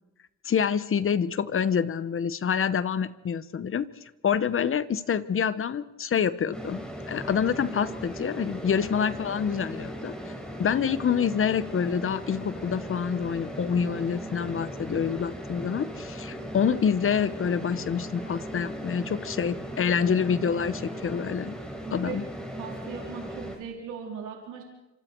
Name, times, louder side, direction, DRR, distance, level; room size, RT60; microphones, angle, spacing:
voice 1, 0.4-3.9 4.2-10.1 10.6-21.5 21.9-22.2, left 7 dB, 45° left, 15 dB, 1.1 m, -27 dB
sound 1, 6.5-23.6, equal, 5° left, 5.0 m, -38 dB
voice 2, 21.8-22.2 22.6-24.6, right 6 dB, 80° right, 0 dB, 4.0 m, -38 dB
26.5 x 26.0 x 4.7 m, 1.0 s
cardioid pair, 90°, 30 cm